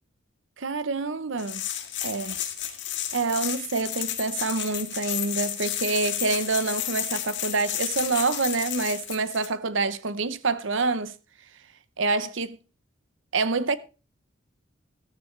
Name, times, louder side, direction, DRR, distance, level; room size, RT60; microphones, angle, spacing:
voice 1, 0.6-1.6 2.0-2.4 2.7-2.8 3.1-11.1 12.0-12.6 13.3-13.8, right 3 dB, 65° right, 0.8 m, -27 dB
sound 1, 1.4-9.5, left 11 dB, 60° left, 1.8 m, -32 dB
13.5 x 12.5 x 3.2 m
head